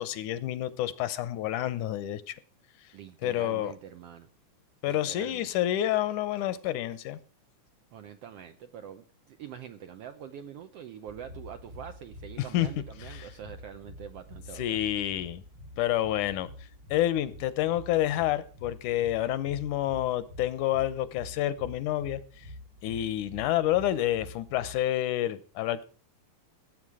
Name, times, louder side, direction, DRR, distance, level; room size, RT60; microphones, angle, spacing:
voice 1, 0.0-2.4 3.2-3.7 4.8-7.2 12.5-12.7 13.2-13.3 14.6-15.4 15.8-16.5 16.9-22.2 22.8-25.8, left 13 dB, 80° left, 15 dB, 2.2 m, -28 dB
voice 2, 2.9-4.3 4.8-5.5 7.9-14.8, right 9 dB, 75° right, 8 dB, 1.4 m, -45 dB
sound 1, 11.1-24.8, left 1 dB, 50° right, 1.6 m, -47 dB
17.0 x 8.5 x 4.8 m, 0.40 s
omnidirectional pair, 3.6 m